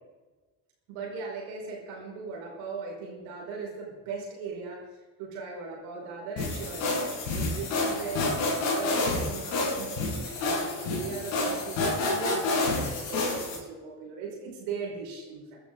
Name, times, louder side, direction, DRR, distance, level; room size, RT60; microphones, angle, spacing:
voice 1, 0.9-4.9 5.2-8.3 8.7-15.6, right 4 dB, 75° right, -1 dB, 5.3 m, -38 dB
sound 1, 6.4-13.6, left 2 dB, 80° left, 6.4 m, -29 dB
24.0 x 12.0 x 3.9 m, 1.3 s
hypercardioid pair, 50°, 49 cm